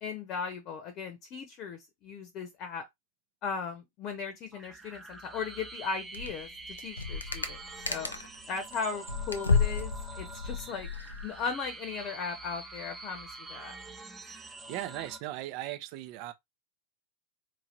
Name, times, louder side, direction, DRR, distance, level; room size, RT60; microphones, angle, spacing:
voice 1, 0.0-2.8 3.4-7.6 7.9-8.1 8.5-10.9 11.2-13.7, left 5 dB, 35° left, 0.9 m, -37 dB
sound 1, 4.5-15.2, right 3 dB, 10° right, 0.9 m, -46 dB
sound 2, 6.1-6.4 6.7-8.4 8.7-11.4, left 4 dB, 75° left, 0.6 m, -31 dB
voice 2, 14.2-16.3, right 14 dB, 45° right, 0.7 m, -39 dB
4.6 x 2.9 x 2.7 m
figure-of-eight pair, 90°, 0 cm